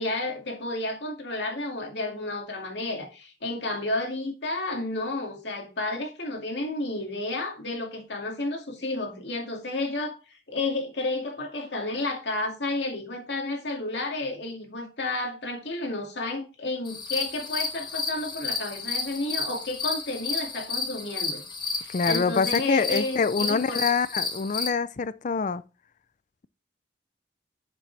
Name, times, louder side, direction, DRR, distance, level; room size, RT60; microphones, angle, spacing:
voice 1, 0.0-21.4 21.8-23.8, left 2 dB, 75° left, 2.3 m, -31 dB
sound 1, 16.9-24.7, left 4 dB, 25° left, 1.4 m, -32 dB
voice 2, 21.9-25.6, left 5 dB, 45° left, 0.4 m, -25 dB
7.6 x 6.9 x 3.3 m
head